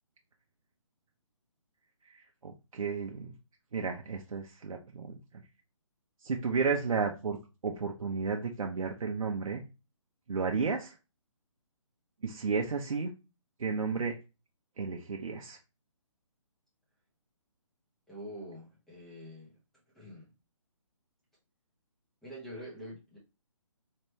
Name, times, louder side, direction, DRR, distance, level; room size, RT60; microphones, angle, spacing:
voice 1, 2.1-3.3 3.7-5.4 6.2-7.4 7.6-9.6 10.3-11.0 12.2-13.1 13.6-14.2 14.8-15.6, right 5 dB, 85° right, 0.8 m, -33 dB
voice 2, 18.1-19.6 19.9-20.3 22.2-23.2, equal, ahead, 0.7 m, -45 dB
4.3 x 2.8 x 3.2 m
hypercardioid pair, 170°, 17 cm